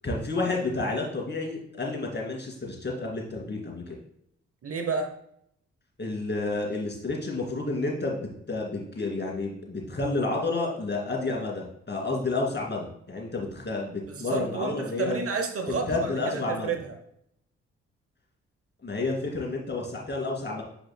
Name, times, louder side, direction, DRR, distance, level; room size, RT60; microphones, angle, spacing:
voice 1, 0.0-4.0 6.0-15.1 15.7-16.7 18.8-20.6, left 3 dB, 35° left, -1 dB, 2.6 m, -30 dB
voice 2, 4.6-5.1 14.1-16.9, right 4 dB, 45° right, 6 dB, 0.9 m, -30 dB
8.2 x 5.7 x 2.3 m, 0.73 s
hypercardioid pair, 40°, 31 cm